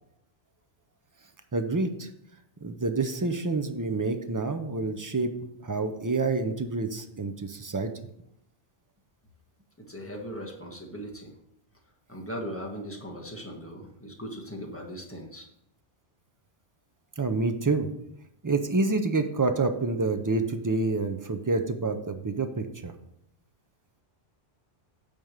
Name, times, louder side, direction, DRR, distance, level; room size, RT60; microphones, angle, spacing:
voice 1, 1.5-2.1 2.6-5.3 5.6-7.9 17.2-17.9 18.4-22.9, right 3 dB, 25° right, 8 dB, 0.4 m, -28 dB
voice 2, 9.8-11.3 12.1-15.5, equal, 10° left, -1 dB, 1.4 m, -39 dB
9.1 x 3.5 x 6.5 m, 0.75 s
omnidirectional pair, 1.2 m